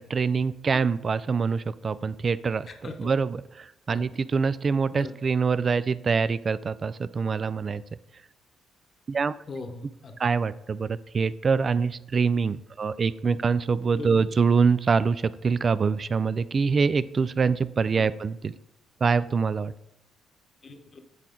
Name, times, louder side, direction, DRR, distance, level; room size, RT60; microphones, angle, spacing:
voice 1, 0.0-7.8 9.1-9.3 10.2-18.5 19.0-19.7, right 5 dB, 40° right, 16 dB, 0.3 m, -25 dB
voice 2, 2.7-3.1 3.9-4.0 4.9-5.1 9.5-10.1 13.2-13.3 14.0-14.3 18.0-18.1 20.6-21.0, left 3 dB, 45° left, 5 dB, 0.9 m, -39 dB
8.1 x 4.5 x 3.7 m, 0.84 s
cardioid pair, 90°, 0 cm